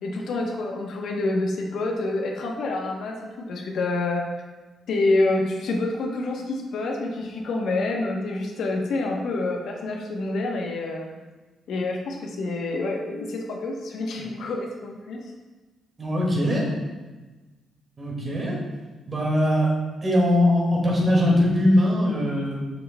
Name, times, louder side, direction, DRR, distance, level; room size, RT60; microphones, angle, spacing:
voice 1, 0.0-4.2 4.9-11.1 11.7-15.2, left 2 dB, 75° left, 0 dB, 0.9 m, -27 dB
voice 2, 16.0-16.7 18.0-18.6 19.1-19.7 20.0-22.7, left 1 dB, 30° right, -3 dB, 2.0 m, -21 dB
6.8 x 6.3 x 2.2 m, 1.2 s
cardioid pair, 95°, 0 cm